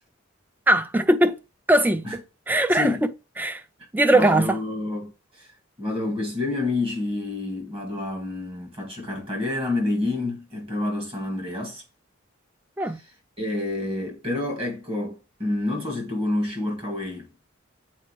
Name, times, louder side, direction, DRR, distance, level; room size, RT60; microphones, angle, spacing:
voice 1, 0.7-1.4 1.7-3.0 3.4-3.6 3.9-4.5 12.8-13.0, right 1 dB, 10° right, 0.4 m, -20 dB
voice 2, 2.7-3.1 4.1-5.5 5.8-11.8 13.4-17.3, left 2 dB, 25° right, 2.0 m, -28 dB
7.7 x 4.3 x 3.0 m
head